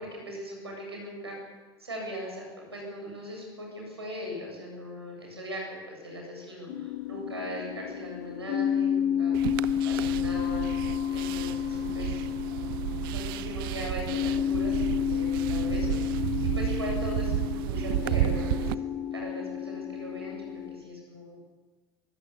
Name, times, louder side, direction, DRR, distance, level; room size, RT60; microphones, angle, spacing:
voice 1, 0.0-1.4 1.8-2.4 2.7-9.4 9.8-10.7 11.1-12.3 13.1-18.7 19.1-21.4, equal, 85° right, 0 dB, 7.4 m, -39 dB
sound 1, 6.7-20.8, left 9 dB, 60° left, 3.3 m, -31 dB
sound 2, 9.3-18.7, right 17 dB, 60° right, 0.7 m, -32 dB
23.0 x 16.0 x 8.3 m, 1.3 s
figure-of-eight pair, 70°, 13 cm